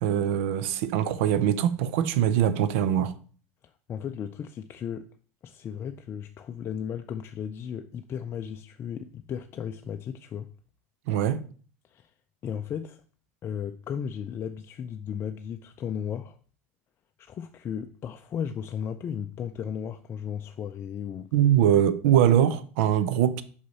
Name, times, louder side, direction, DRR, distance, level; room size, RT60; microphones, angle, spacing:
voice 1, 0.0-3.1 11.1-11.4 21.3-23.4, right 10 dB, 70° right, 0.6 m, -22 dB
voice 2, 3.9-5.1 5.4-10.5 11.9-12.1 12.4-13.0 13.4-16.4 17.2-21.3, left 8 dB, 35° left, 0.4 m, -35 dB
5.5 x 4.7 x 4.1 m
hypercardioid pair, 95°, 7 cm